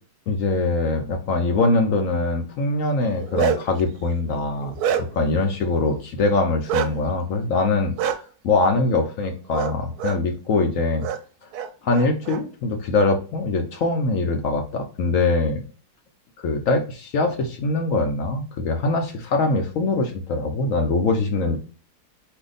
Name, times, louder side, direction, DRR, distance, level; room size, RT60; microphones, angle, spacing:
voice 1, 0.3-4.7 5.0-8.2 8.4-11.1 11.8-15.6 16.4-21.6, left 3 dB, 60° left, 4 dB, 0.9 m, -23 dB
Bark, 3.0-3.8 4.3-5.3 6.7-6.9 8.0-8.2 9.5-9.7 10.0-10.2 11.0-11.2 11.5-12.4, right 8 dB, 70° right, 1.0 m, -25 dB
4.3 x 2.8 x 3.9 m, 0.36 s
omnidirectional pair, 1.9 m